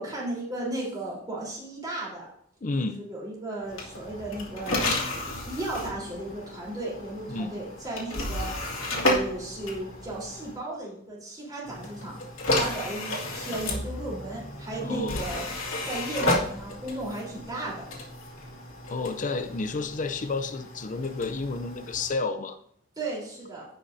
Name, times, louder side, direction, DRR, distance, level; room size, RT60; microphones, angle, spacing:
voice 1, 0.0-2.3 3.0-4.8 5.1-8.5 9.0-12.2 12.6-15.4 15.8-17.9 23.0-23.7, right 2 dB, 20° right, -5 dB, 3.7 m, -35 dB
voice 2, 2.6-3.0 7.3-7.5 14.8-15.3 18.9-22.6, left 3 dB, 40° left, 9 dB, 0.6 m, -31 dB
sound 1, 3.7-10.6 11.6-22.2, left 1 dB, 80° left, 2.3 m, -32 dB
16.0 x 5.7 x 2.7 m, 0.67 s
head